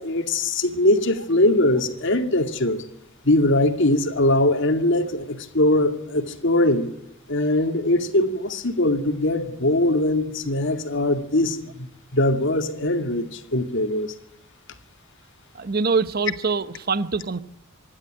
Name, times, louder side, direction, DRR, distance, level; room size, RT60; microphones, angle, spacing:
voice 1, 0.0-2.8 3.2-6.9 7.3-14.1, left 1 dB, 65° left, 2.3 m, -21 dB
voice 2, 15.5-17.4, right 4 dB, 50° right, 0.9 m, -24 dB
26.0 x 11.5 x 9.9 m
head